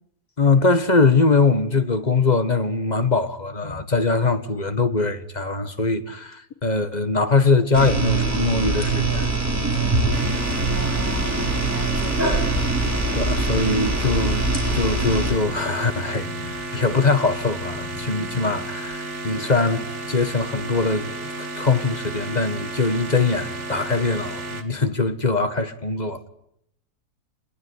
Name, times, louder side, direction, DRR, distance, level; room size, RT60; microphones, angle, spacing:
voice 1, 0.4-9.3 13.1-26.3, left 3 dB, 25° left, 1.7 m, -22 dB
sound 1, 7.7-15.3, right 2 dB, 10° right, 6.6 m, -23 dB
sound 2, 10.1-24.6, right 2 dB, 45° right, 2.6 m, -33 dB
voice 2, 10.7-12.4, left 4 dB, 65° left, 3.3 m, -37 dB
26.0 x 21.5 x 9.8 m
omnidirectional pair, 1.7 m